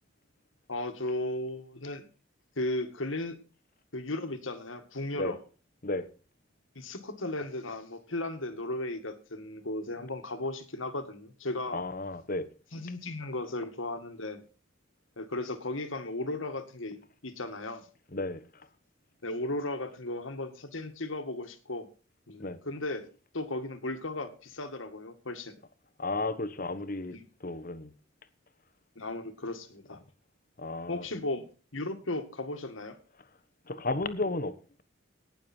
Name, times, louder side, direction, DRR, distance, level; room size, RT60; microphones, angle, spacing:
voice 1, 0.7-2.0 2.6-3.4 3.9-5.4 6.8-11.9 12.7-14.4 15.2-17.9 19.2-21.9 22.3-23.1 23.3-25.6 27.1-27.2 29.0-30.0 30.9-31.4 31.7-33.0, left 2 dB, 80° left, 2.0 m, -35 dB
voice 2, 11.7-12.5 18.1-18.4 22.4-22.6 26.0-27.1 27.4-27.9 30.6-31.0 33.7-34.5, left 2 dB, 45° left, 1.2 m, -33 dB
18.5 x 7.2 x 4.5 m
head